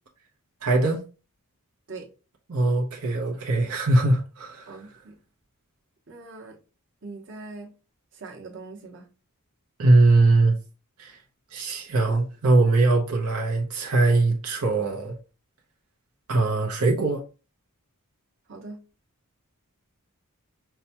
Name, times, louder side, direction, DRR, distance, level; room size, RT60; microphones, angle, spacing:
voice 1, 0.6-1.0 2.5-4.7 9.8-10.6 11.0-11.2 11.5-15.1 16.3-17.2, right 2 dB, 90° right, 0.8 m, -21 dB
voice 2, 4.7-5.1 6.1-6.6 7.0-7.7 8.1-9.0 18.5-18.8, right 3 dB, 55° right, 1.0 m, -41 dB
5.7 x 2.2 x 2.8 m
head